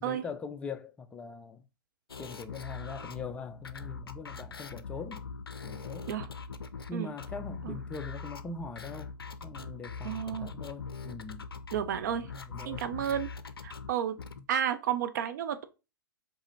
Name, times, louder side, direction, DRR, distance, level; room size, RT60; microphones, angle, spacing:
voice 1, 0.0-1.6 2.2-5.3 5.6-6.1 6.9-9.1 9.4-11.5 12.1-13.2 14.4-14.5, left 4 dB, 10° left, 0.3 m, -42 dB
sound 1, 2.1-14.4, left 5 dB, 80° left, 0.4 m, -42 dB
voice 2, 10.0-10.5 11.7-12.3 12.6-13.3 13.6-14.2 14.5-15.6, right 9 dB, 50° right, 0.5 m, -31 dB
4.7 x 2.6 x 2.9 m
figure-of-eight pair, 110°, 12 cm